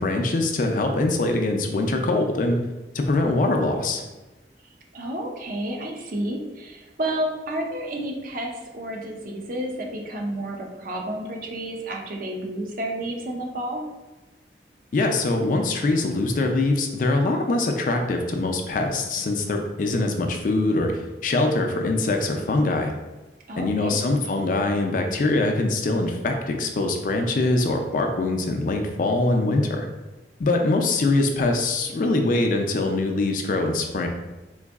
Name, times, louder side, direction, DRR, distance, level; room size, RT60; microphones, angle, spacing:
voice 1, 0.0-2.6 2.9-4.0 14.9-22.9 23.6-29.9 30.4-34.1, left 2 dB, 50° left, 4 dB, 0.3 m, -23 dB
voice 2, 4.9-13.8 23.5-24.0, right 1 dB, 50° right, 1 dB, 0.5 m, -31 dB
3.8 x 2.6 x 2.3 m, 1.1 s
head